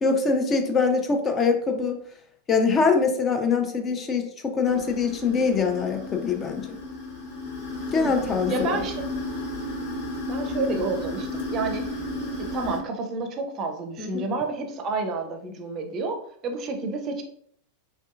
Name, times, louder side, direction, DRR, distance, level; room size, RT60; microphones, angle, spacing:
voice 1, 0.0-2.0 2.5-6.8 7.9-8.8 14.0-14.3, left 5 dB, 25° left, 4 dB, 0.4 m, -23 dB
sound 1, 4.6-12.8, left 2 dB, 55° left, 1.2 m, -33 dB
voice 2, 7.9-9.0 10.2-11.9 12.4-17.2, right 3 dB, 30° right, 4 dB, 0.5 m, -30 dB
3.3 x 2.6 x 2.3 m, 0.64 s
figure-of-eight pair, 90°, 0 cm